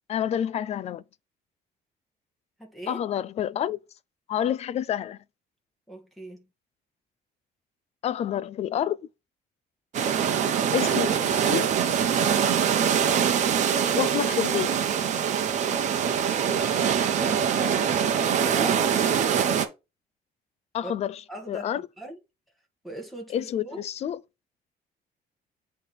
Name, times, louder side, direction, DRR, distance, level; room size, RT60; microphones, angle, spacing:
voice 1, 0.1-1.0 2.9-3.8 4.3-5.2 8.0-9.0 10.7-11.7 13.9-14.9 20.7-21.2 21.5-21.9 23.3-24.2, left 10 dB, 40° left, 0.4 m, -28 dB
voice 2, 2.6-3.0 5.9-6.5 20.8-20.9 21.3-22.2 22.8-23.8, right 1 dB, ahead, 1.9 m, -40 dB
sound 1, 9.9-19.7, right 8 dB, 45° right, 1.0 m, -24 dB
8.1 x 3.3 x 4.2 m
cardioid pair, 175°, 17 cm